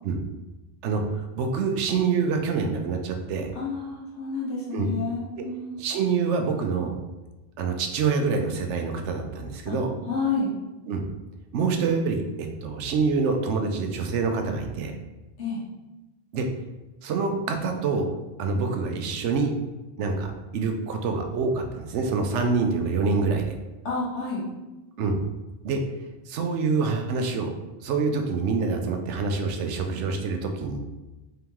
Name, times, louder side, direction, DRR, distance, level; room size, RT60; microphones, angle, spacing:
voice 1, 0.8-3.5 4.7-4.9 5.8-7.0 7.6-9.9 10.9-11.0 11.5-14.9 16.3-16.4 17.0-18.1 18.4-19.5 20.0-23.6 25.0-25.2 25.6-25.8 26.3-27.5 27.8-30.8, right 4 dB, 85° right, 4 dB, 0.9 m, -26 dB
voice 2, 3.5-5.8 9.7-9.8 10.1-10.5 15.4-15.6 23.8-24.4, left 4 dB, 80° left, -6 dB, 1.5 m, -29 dB
3.8 x 3.6 x 2.9 m, 1.1 s
omnidirectional pair, 1.2 m